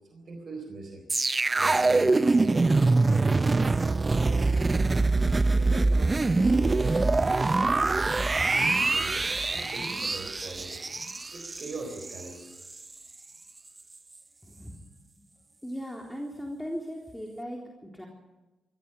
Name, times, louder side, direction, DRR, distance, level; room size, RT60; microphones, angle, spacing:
voice 1, 0.1-1.0 1.6-10.8 11.3-12.5, right 3 dB, 50° right, 4 dB, 4.0 m, -42 dB
sound 1, 1.1-12.3 12.6-12.8, right 3 dB, 30° right, 0.7 m, -24 dB
voice 2, 14.4-14.8 15.6-18.1, equal, 10° left, 0 dB, 3.8 m, -38 dB
22.5 x 15.5 x 7.9 m, 1.1 s
hypercardioid pair, 45°, 0 cm